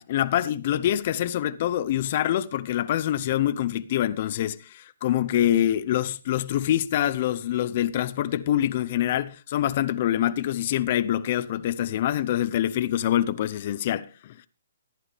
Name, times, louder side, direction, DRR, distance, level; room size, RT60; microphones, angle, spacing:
voice 1, 0.0-14.5, left 12 dB, 45° left, 0.5 m, -25 dB
14.5 x 9.4 x 3.5 m
figure-of-eight pair, 130°, 0 cm